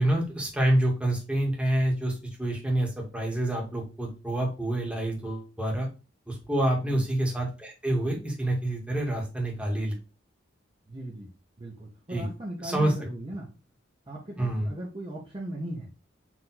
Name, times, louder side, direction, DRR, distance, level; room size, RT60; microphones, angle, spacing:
voice 1, 0.0-5.9 6.3-10.0 12.1-12.3 12.6-12.9 14.4-14.7, right 1 dB, 5° right, -1 dB, 1.4 m, -27 dB
voice 2, 10.9-11.3 11.6-13.5 14.1-15.9, right 1 dB, 25° right, -2 dB, 0.8 m, -38 dB
4.5 x 2.6 x 3.9 m, 0.30 s
head